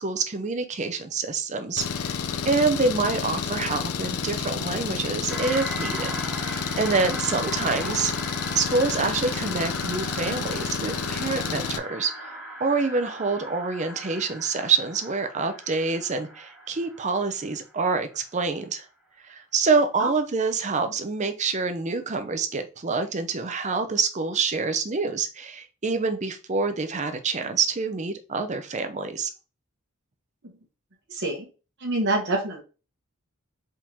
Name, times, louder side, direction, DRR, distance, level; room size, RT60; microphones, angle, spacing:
voice 1, 0.0-8.1 8.5-18.9 19.2-29.3, right 4 dB, 30° right, 8 dB, 0.5 m, -27 dB
Engine, 1.8-11.8, left 6 dB, 85° left, 0.5 m, -30 dB
sound 1, 5.3-18.0, equal, 5° right, 1.8 m, -38 dB
voice 2, 31.1-31.5 31.8-32.6, right 2 dB, 50° right, 0 dB, 1.0 m, -26 dB
4.8 x 3.7 x 2.7 m, 0.32 s
head